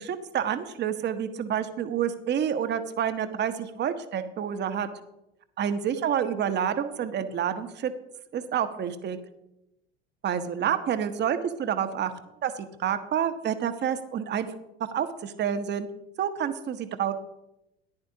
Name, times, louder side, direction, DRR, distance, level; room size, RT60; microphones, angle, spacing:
voice 1, 0.0-4.9 5.6-7.9 8.3-9.2 10.2-12.1 12.4-14.5 14.9-15.9 16.2-17.1, right 9 dB, 35° right, 10 dB, 0.9 m, -28 dB
14.0 x 10.5 x 2.8 m, 0.88 s
figure-of-eight pair, 70°, 32 cm